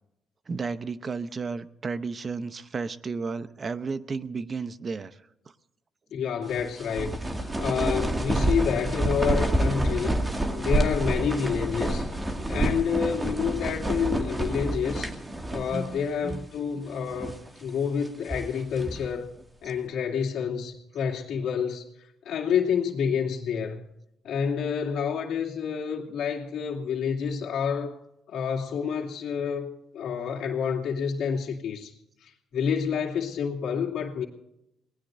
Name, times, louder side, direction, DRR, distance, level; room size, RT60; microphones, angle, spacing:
voice 1, 0.5-5.2 15.7-16.4 16.7-16.8, right 4 dB, 40° right, 0.8 m, -33 dB
voice 2, 6.1-10.2 10.6-12.0 12.5-15.1 15.5-19.3 19.6-21.8 22.2-23.8 24.2-28.0 28.3-31.9 32.2-34.3, left 7 dB, 75° left, 2.6 m, -28 dB
sound 1, 6.5-16.0 16.3-16.4 17.0-17.5 18.0-19.1, right 1 dB, 20° right, 2.2 m, -28 dB
28.0 x 19.5 x 2.7 m
cardioid pair, 90°, 0 cm